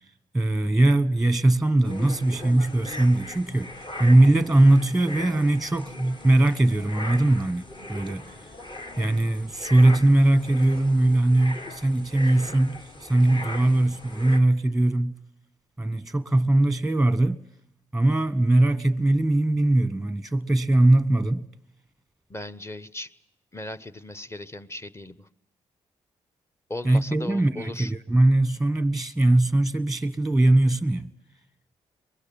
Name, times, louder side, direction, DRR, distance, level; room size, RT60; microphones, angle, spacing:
voice 1, 0.3-3.7 4.0-8.2 9.0-15.1 15.8-17.4 17.9-21.4 26.8-31.1, right 1 dB, ahead, 1.3 m, -21 dB
sound 1, 1.8-14.4, left 1 dB, 35° left, 2.0 m, -40 dB
voice 2, 22.3-23.1 23.5-25.3 26.7-27.9, left 1 dB, 20° left, 1.2 m, -37 dB
23.5 x 21.0 x 7.6 m
supercardioid pair, 50°, 13 cm